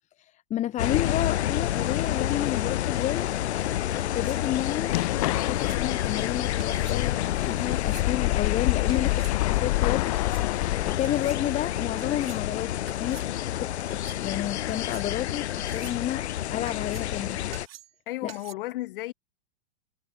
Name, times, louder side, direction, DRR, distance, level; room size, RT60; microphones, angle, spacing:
voice 1, 0.2-3.3 3.9-4.9 5.3-9.2 9.5-10.1 10.8-12.7 13.0-13.2 13.6-16.2 16.5-17.4 18.2-18.3, left 12 dB, 20° left, 1.8 m, -31 dB
sound 1, 0.8-17.7, left 12 dB, 85° left, 0.9 m, -29 dB
sound 2, 4.0-4.5 5.4-5.8 6.6-7.0 7.7-8.1 8.9-9.4 10.1-10.4 11.0-11.4 12.0-12.4 12.9-13.3 13.8-14.2 14.7-15.3 15.6-16.0 16.7-17.2 17.5-18.0 18.3-18.5, right 13 dB, 65° right, 5.7 m, -48 dB
sound 3, 4.9-11.0, left 20 dB, 35° left, 0.4 m, -28 dB
voice 2, 18.1-19.1, left 17 dB, 55° left, 7.6 m, -33 dB
hypercardioid pair, 150°, 32 cm